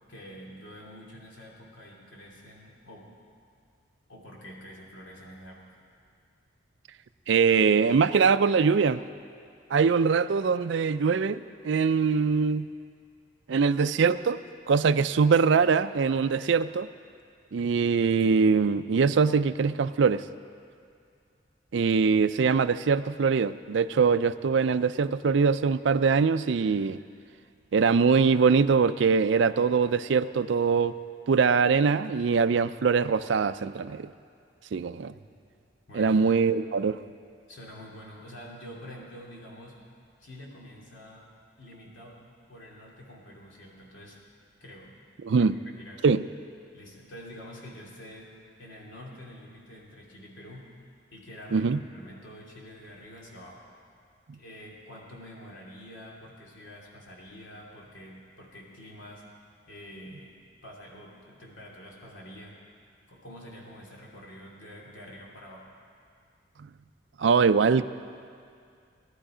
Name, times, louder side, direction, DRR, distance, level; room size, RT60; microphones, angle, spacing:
voice 1, 0.1-3.1 4.1-5.6 35.1-35.3 35.9-36.2 37.5-39.8 40.2-41.3 41.6-42.2 42.5-44.2 44.6-44.9 45.3-46.0 46.7-48.3 48.6-50.7 51.1-53.6 54.3-59.2 59.7-60.3 60.6-62.6 63.1-65.7, equal, 75° left, -3 dB, 2.7 m, -47 dB
voice 2, 7.3-9.0 9.7-12.7 13.5-14.4 14.7-16.9 17.5-20.2 21.7-27.0 27.7-30.9 31.3-34.1 34.7-35.1 35.9-37.0 45.2-45.6 46.0-46.2 51.5-51.8 67.2-67.8, right 5 dB, 70° right, 12 dB, 0.4 m, -23 dB
18.5 x 11.5 x 5.0 m, 2.3 s
head